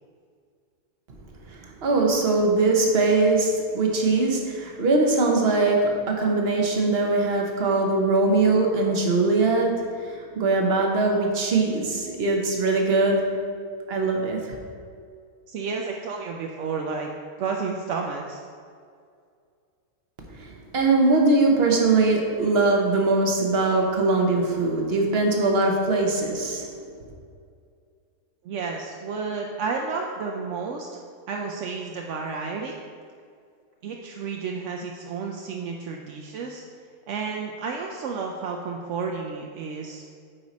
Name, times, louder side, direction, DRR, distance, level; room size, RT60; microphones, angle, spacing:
voice 1, 1.5-13.4 13.9-14.4 20.3-20.5 20.7-26.7, right 3 dB, 45° right, 1 dB, 1.1 m, -21 dB
voice 2, 15.5-17.1 17.4-18.4 28.4-31.0 31.3-32.7 33.8-36.6 37.1-40.0, right 5 dB, 65° right, 1 dB, 0.7 m, -31 dB
9.0 x 4.8 x 4.1 m, 2.2 s
omnidirectional pair, 1.7 m